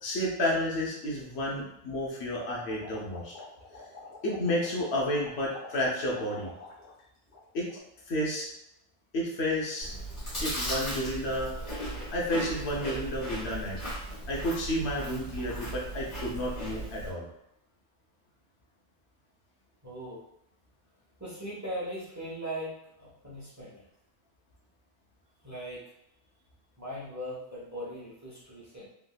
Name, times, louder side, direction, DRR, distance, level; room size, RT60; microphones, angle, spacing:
voice 1, 0.0-3.3 4.2-6.5 7.5-7.7 8.1-8.5 9.1-10.0 10.4-11.5 12.1-13.8 14.3-17.3, left 1 dB, 80° left, -3 dB, 1.1 m, -31 dB
sound 1, 2.7-7.0 7.3-7.8, left 3 dB, 65° left, 1.5 m, -48 dB
Chewing mastication, 9.8-17.1, right 1 dB, 40° left, 1.4 m, -37 dB
voice 2, 19.8-20.3 21.2-23.9 25.4-25.9 26.8-28.9, equal, 15° right, -7 dB, 1.0 m, -39 dB
3.5 x 2.6 x 2.3 m, 0.80 s
omnidirectional pair, 1.1 m